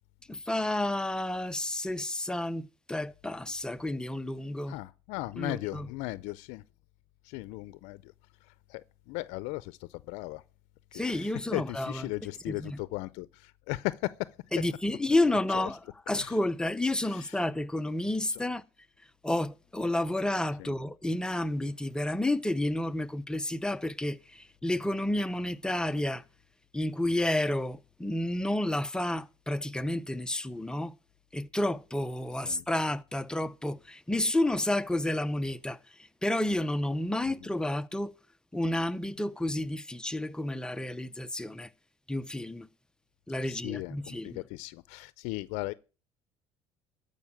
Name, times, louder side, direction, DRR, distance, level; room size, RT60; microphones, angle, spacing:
voice 1, 0.3-4.8 5.4-5.9 10.9-12.1 12.5-12.8 14.5-18.6 19.2-26.2 26.7-30.9 31.3-35.8 36.2-38.1 38.5-41.7 42.1-42.7 43.3-44.4, left 1 dB, 5° left, 0.6 m, -30 dB
voice 2, 4.7-6.6 7.2-8.1 8.7-8.8 9.1-10.4 10.9-14.0 15.5-15.7 16.2-16.4 17.1-17.4 18.3-18.4 20.6-20.7 32.5-32.6 37.2-37.3 43.5-45.7, left 20 dB, 80° left, 0.5 m, -37 dB
14.0 x 5.3 x 8.6 m
cardioid pair, 110°, 12 cm